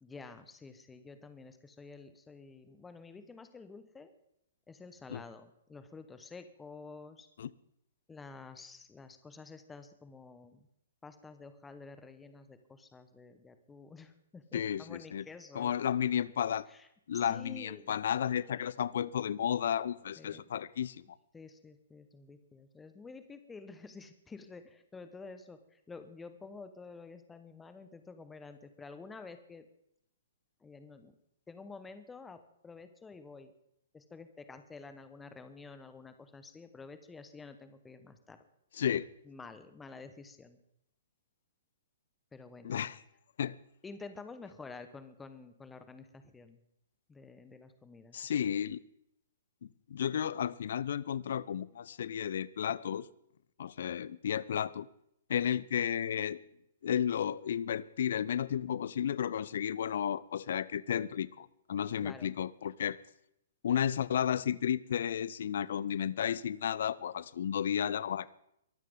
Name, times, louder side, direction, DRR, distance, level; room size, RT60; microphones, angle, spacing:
voice 1, 0.0-4.1 4.7-7.3 8.1-10.7 11.0-15.7 16.7-16.9 17.1-17.9 20.2-20.4 21.3-29.7 30.6-31.1 31.5-33.5 33.9-38.4 39.2-40.6 42.3-42.7 43.8-46.6 47.1-48.3 62.0-62.3, left 4 dB, 10° left, 1.3 m, -50 dB
voice 2, 14.5-15.2 15.5-16.7 17.1-21.0 38.8-39.1 42.6-43.0 43.4-43.6 48.1-48.8 49.6-53.1 53.6-54.9 55.3-56.4 56.8-63.0 63.6-68.3, left 9 dB, 60° left, 0.6 m, -33 dB
23.0 x 13.0 x 3.9 m
figure-of-eight pair, 120°, 0 cm